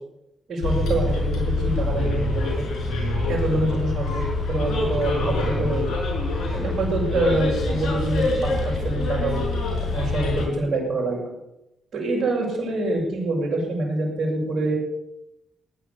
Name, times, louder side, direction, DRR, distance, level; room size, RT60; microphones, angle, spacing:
voice 1, 0.5-2.6 3.3-5.9 6.5-9.4 9.8-11.3 11.9-14.7, right 2 dB, 60° right, -5 dB, 6.1 m, -25 dB
Bus, 0.6-10.4, left 2 dB, 70° left, 5.8 m, -25 dB
17.5 x 10.5 x 6.9 m, 0.88 s
hypercardioid pair, 45°, 0 cm